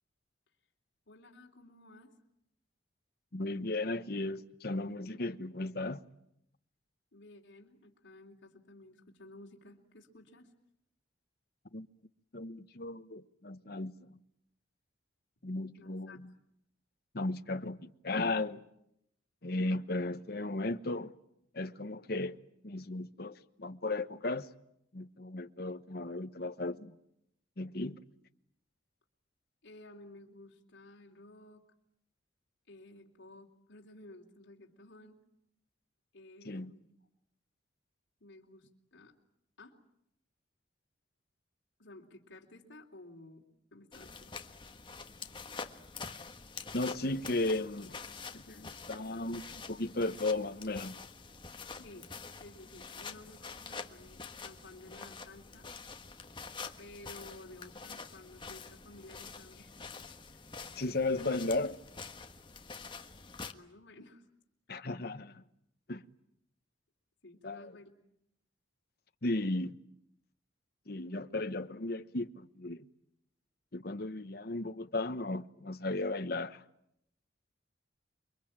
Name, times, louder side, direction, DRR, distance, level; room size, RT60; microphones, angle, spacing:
voice 1, 1.1-2.1 7.1-10.5 15.8-16.3 29.6-31.6 32.7-35.2 36.1-36.9 38.2-39.1 39.6-39.8 41.8-43.5 43.7-44.4 51.6-52.1 52.4-55.7 56.8-59.8 60.3-60.4 60.8-61.3 63.5-64.3 67.2-67.9, left 2 dB, 75° left, 3.6 m, -54 dB
voice 2, 3.3-6.0 11.7-11.9 12.3-14.2 15.4-16.3 17.1-18.6 19.4-21.1 21.5-22.4 22.6-24.5 24.9-27.0 27.6-28.0 36.4-36.7 46.7-48.0 48.3-51.0 60.8-61.8 64.7-65.4 65.9-66.0 67.4-67.7 69.2-69.8 70.9-72.9 73.7-76.6, left 2 dB, 55° left, 1.1 m, -35 dB
sound 1, 43.9-63.5, left 4 dB, 25° left, 1.4 m, -46 dB
29.0 x 23.0 x 8.9 m
head